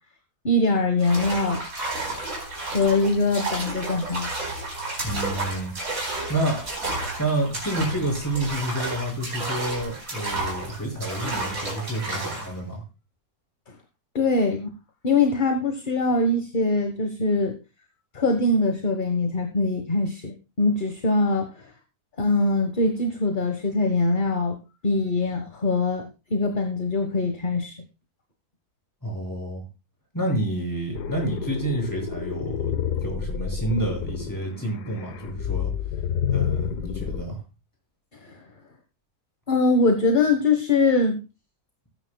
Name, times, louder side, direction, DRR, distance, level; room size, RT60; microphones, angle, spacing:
voice 1, 0.4-1.6 2.7-4.3 14.1-14.7 15.0-17.5 18.1-21.5 22.2-24.6 24.8-27.8 38.2-38.4 39.5-41.2, left 2 dB, 35° left, 5 dB, 1.3 m, -22 dB
sound 1, 1.0-12.6, right 2 dB, 60° right, 4.9 m, -31 dB
voice 2, 5.0-5.7 6.3-6.6 7.2-12.8 29.0-29.7 30.1-32.7 33.0-35.7 36.3-37.4, right 1 dB, 10° left, 0 dB, 6.2 m, -29 dB
sound 2, 30.9-37.2, left 8 dB, 90° left, 1.5 m, -29 dB
19.0 x 9.8 x 2.3 m, 0.29 s
omnidirectional pair, 1.7 m